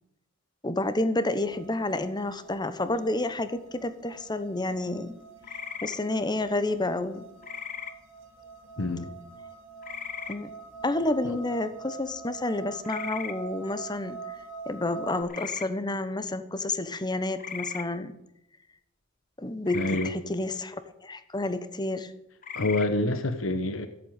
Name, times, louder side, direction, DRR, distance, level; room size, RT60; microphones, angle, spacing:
voice 1, 0.6-5.1 5.8-7.3 10.3-10.5 10.8-14.2 14.7-18.2 19.4-22.1, left 2 dB, 20° left, 12 dB, 1.1 m, -30 dB
sound 1, 1.3-15.2, right 5 dB, 75° right, 2.5 m, -45 dB
sound 2, 5.4-6.0 7.4-7.9 9.8-10.4 12.8-13.3 15.3-15.7 17.4-17.9 19.7-20.1 22.4-22.9, left 7 dB, 45° left, 1.2 m, -37 dB
voice 2, 8.8-9.1 11.2-11.4 19.7-20.1 22.5-23.9, left 2 dB, 85° left, 10 dB, 1.1 m, -27 dB
14.5 x 8.6 x 9.0 m, 0.84 s
head